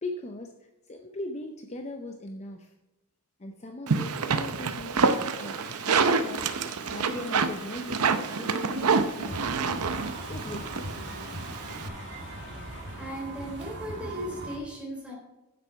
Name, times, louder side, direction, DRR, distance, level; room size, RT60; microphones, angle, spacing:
voice 1, 0.0-0.5 0.9-2.7 3.4-9.4 10.2-10.8, left 2 dB, 30° left, 4 dB, 0.6 m, -39 dB
sound 1, 3.9-11.9, right 5 dB, 80° right, 0.7 m, -27 dB
sound 2, 5.1-13.5, left 3 dB, 55° left, 2.0 m, -50 dB
sound 3, 9.3-14.6, right 1 dB, 55° right, 2.1 m, -39 dB
voice 2, 13.0-15.2, equal, 5° right, -3 dB, 3.4 m, -37 dB
9.3 x 7.6 x 4.5 m, 1.0 s
head